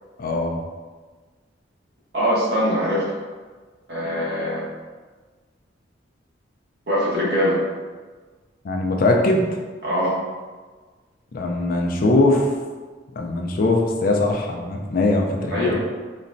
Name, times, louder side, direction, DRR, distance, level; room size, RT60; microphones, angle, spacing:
voice 1, 0.2-0.6 8.6-9.5 11.3-12.5 13.2-15.8, left 2 dB, 50° left, 1 dB, 0.4 m, -21 dB
voice 2, 2.1-3.0 3.9-4.6 6.9-7.5 9.8-10.1 15.5-15.8, equal, 65° right, -7 dB, 1.1 m, -22 dB
3.9 x 2.2 x 2.6 m, 1.4 s
head